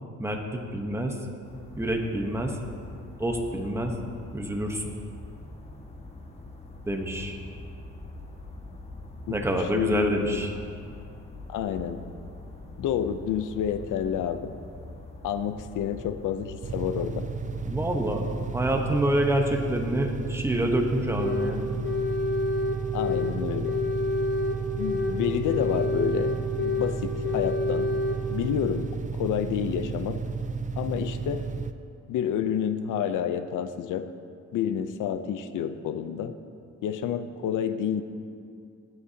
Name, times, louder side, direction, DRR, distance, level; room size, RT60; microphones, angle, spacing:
voice 1, 0.2-1.2 1.7-2.6 3.2-4.0 4.3-4.9 6.9-7.4 9.3-10.5 17.6-21.8, right 1 dB, 10° right, 2 dB, 1.1 m, -27 dB
sound 1, 1.4-19.1, left 2 dB, 20° left, 1.6 m, -43 dB
voice 2, 9.3-10.5 11.5-12.0 12.8-14.5 15.2-17.3 22.9-23.8 24.8-27.9 28.3-30.2 30.8-31.5 32.1-34.1 34.5-36.4 36.8-38.0, left 8 dB, 85° left, 10 dB, 0.7 m, -29 dB
sound 2, 16.6-31.7, right 4 dB, 25° right, 0.4 m, -33 dB
sound 3, 21.2-21.6 21.8-23.4 23.6-25.2 25.4-27.0 27.2-28.2, left 3 dB, 40° left, 1.4 m, -28 dB
20.0 x 7.9 x 2.8 m, 2.4 s
cardioid pair, 120°, 30 cm